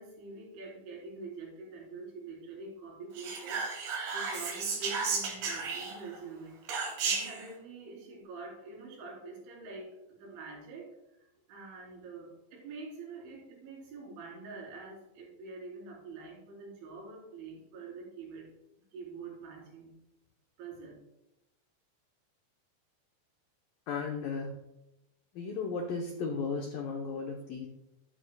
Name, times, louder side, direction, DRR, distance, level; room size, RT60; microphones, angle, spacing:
voice 1, 0.0-3.6 4.1-6.6 7.0-10.9 11.5-18.5 18.9-19.9 20.6-20.9, right 3 dB, 90° right, -4 dB, 5.9 m, -45 dB
Whispering, 3.2-6.2 6.7-7.4, right 4 dB, 60° right, 4.0 m, -33 dB
voice 2, 23.9-24.5 25.3-27.7, left 4 dB, 90° left, 2 dB, 1.9 m, -35 dB
13.5 x 11.0 x 2.2 m, 0.92 s
omnidirectional pair, 5.3 m